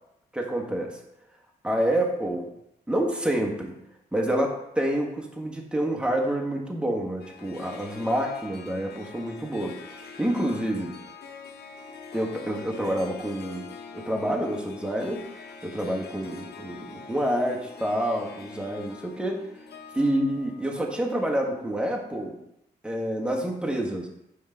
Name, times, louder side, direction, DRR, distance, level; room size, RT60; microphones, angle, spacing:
voice 1, 0.3-1.0 1.6-2.5 2.9-3.7 4.1-10.9 12.1-13.6 13.9-15.2 15.6-19.4 19.9-22.4 22.8-24.1, right 1 dB, 5° right, 0 dB, 1.2 m, -28 dB
Harp, 7.2-21.7, left 4 dB, 70° left, 0.7 m, -44 dB
5.2 x 4.7 x 3.9 m, 0.84 s
cardioid pair, 60°, 18 cm